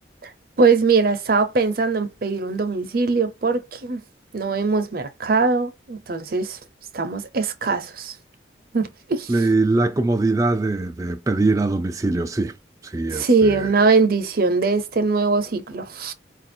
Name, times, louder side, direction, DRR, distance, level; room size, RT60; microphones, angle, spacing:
voice 1, 0.6-4.0 4.3-6.6 6.9-8.1 8.7-9.3 13.1-16.1, right 4 dB, 50° right, 0.6 m, -21 dB
voice 2, 9.3-12.5 12.8-13.7, right 2 dB, 15° right, 0.3 m, -22 dB
4.7 x 2.5 x 4.2 m
head